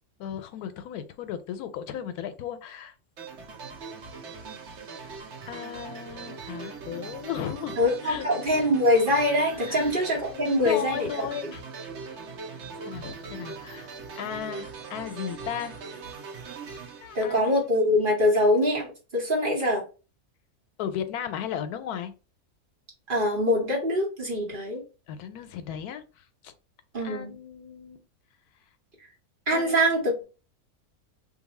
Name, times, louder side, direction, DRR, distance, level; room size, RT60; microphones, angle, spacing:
voice 1, 0.2-2.9 5.5-8.6 9.5-9.9 10.3-11.9 12.7-13.9 14.2-15.7 17.0-17.5 20.8-22.1 25.1-26.5 27.0-28.0 29.5-30.0, left 9 dB, 85° left, 10 dB, 1.1 m, -36 dB
sound 1, 3.2-18.0, right 5 dB, 55° right, 0.9 m, -41 dB
voice 2, 7.8-11.3 17.1-18.9 19.1-19.8 23.1-24.8 26.9-27.3 29.5-30.2, left 1 dB, 40° right, -2 dB, 1.2 m, -24 dB
2.6 x 2.6 x 4.0 m, 0.33 s
omnidirectional pair, 1.6 m